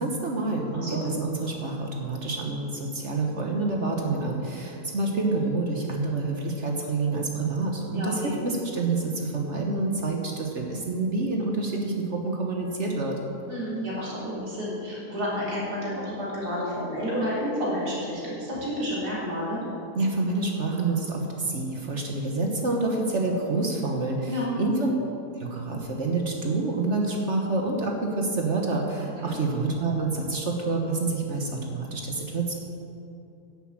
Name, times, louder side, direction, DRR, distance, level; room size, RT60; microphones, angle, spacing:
voice 1, 0.0-13.2 19.9-24.9 25.4-32.5, right 3 dB, 50° right, 1 dB, 1.4 m, -27 dB
voice 2, 7.9-8.3 13.5-19.6 24.3-24.6 29.2-29.4, equal, 85° right, -7 dB, 4.2 m, -30 dB
10.5 x 7.9 x 7.5 m, 2.7 s
omnidirectional pair, 1.6 m